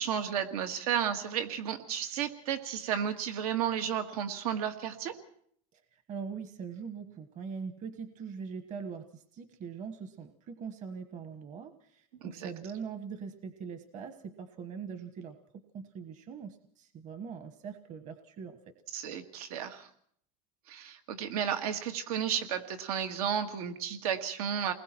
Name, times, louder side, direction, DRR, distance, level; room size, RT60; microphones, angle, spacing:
voice 1, 0.0-5.2 12.2-12.5 18.9-19.9 20.7-24.7, right 8 dB, 85° right, 6 dB, 1.8 m, -33 dB
voice 2, 5.7-18.6, right 6 dB, 40° right, 8 dB, 1.4 m, -42 dB
29.0 x 20.5 x 4.5 m, 0.65 s
supercardioid pair, 125°, 19 cm